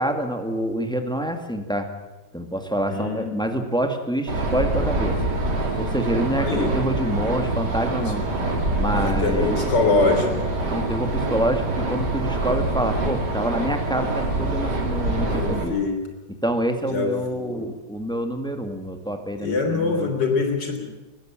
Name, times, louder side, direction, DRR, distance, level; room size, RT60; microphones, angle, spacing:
voice 1, 0.0-1.9 2.3-5.2 5.8-8.2 8.7-9.6 10.7-15.8 16.4-20.2, right 1 dB, 5° left, 5 dB, 2.0 m, -26 dB
voice 2, 2.9-3.3 6.1-6.7 8.1-8.2 8.9-10.6 15.2-16.0 16.9-17.1 17.4-17.7 19.4-20.9, left 3 dB, 80° left, 4 dB, 3.9 m, -24 dB
sound 1, 4.3-15.6, right 2 dB, 70° right, 3.7 m, -25 dB
21.0 x 15.5 x 8.9 m, 1.1 s
omnidirectional pair, 1.9 m